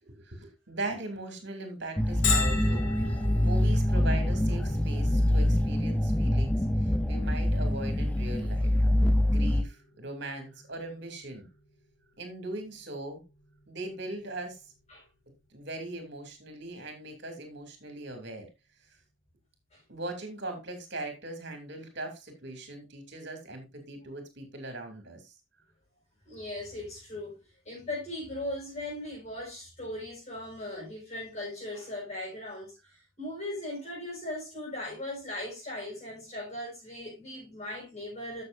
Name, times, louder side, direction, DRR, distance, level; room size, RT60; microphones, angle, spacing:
voice 1, 0.0-8.7 9.3-11.5 12.2-13.2 13.7-14.6 15.5-18.5 19.9-25.3, right 2 dB, 55° right, 2.9 m, -40 dB
sound 1, 2.0-9.6, left 1 dB, 5° left, 0.5 m, -25 dB
Bell, 2.2-17.7, left 5 dB, 60° left, 2.4 m, -41 dB
voice 2, 26.3-27.4 27.6-32.7 33.2-38.4, left 1 dB, 30° left, 6.1 m, -38 dB
12.5 x 6.9 x 2.6 m
head